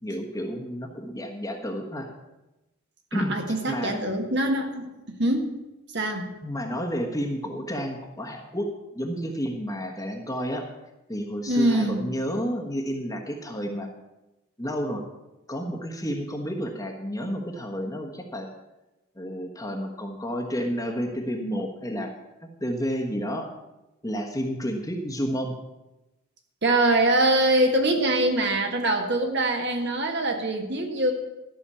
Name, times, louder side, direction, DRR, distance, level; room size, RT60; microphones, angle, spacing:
voice 1, 0.0-2.1 3.1-3.4 3.7-4.0 6.4-8.7 8.9-10.7 11.1-13.9 14.6-15.0 15.5-18.5 19.2-22.1 22.6-23.5 24.0-25.5, equal, 15° left, 1 dB, 1.3 m, -30 dB
voice 2, 3.1-5.5 5.9-6.3 11.5-12.0 26.6-31.1, right 1 dB, 50° right, 3 dB, 1.7 m, -23 dB
13.0 x 6.3 x 8.4 m, 1.0 s
head